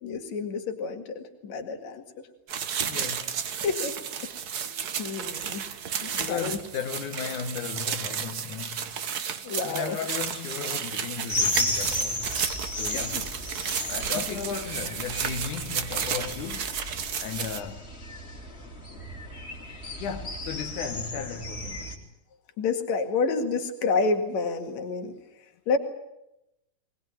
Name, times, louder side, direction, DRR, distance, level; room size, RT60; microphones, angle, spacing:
voice 1, 0.0-2.3 3.6-3.9 4.5-5.7 6.0-6.6 9.4-10.0 12.9-13.2 14.3-14.4 22.6-25.1 25.7-25.8, left 4 dB, 65° left, 3.3 m, -29 dB
sound 1, 2.5-17.6, right 8 dB, 80° right, 0.8 m, -32 dB
voice 2, 2.8-3.6 6.1-9.0 9.6-12.4 12.7-13.4 13.9-16.8 17.2-17.8 19.7-22.0, left 7 dB, 90° left, 2.8 m, -36 dB
sound 2, 11.3-22.0, left 1 dB, 20° left, 3.1 m, -34 dB
21.0 x 21.0 x 9.5 m
omnidirectional pair, 3.4 m